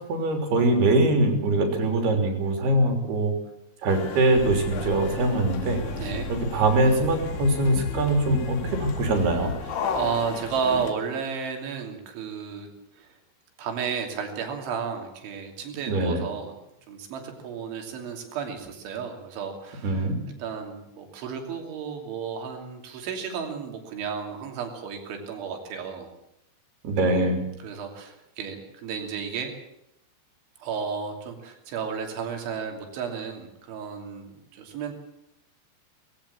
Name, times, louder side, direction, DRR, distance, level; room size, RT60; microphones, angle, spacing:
voice 1, 0.1-3.3 3.8-5.8 6.3-9.5 15.9-16.2 19.8-20.2 26.8-27.4, right 2 dB, 60° right, 4 dB, 5.1 m, -23 dB
sound 1, 3.9-10.9, left 6 dB, 80° left, 4.5 m, -36 dB
sound 2, 4.4-9.5, equal, 35° right, 3.4 m, -35 dB
voice 2, 6.0-6.3 9.6-12.7 13.0-13.2 13.6-16.6 16.9-20.1 20.4-26.1 27.6-29.5 30.6-34.9, right 6 dB, 90° right, 4 dB, 5.3 m, -33 dB
20.0 x 16.5 x 8.6 m, 0.82 s
omnidirectional pair, 5.2 m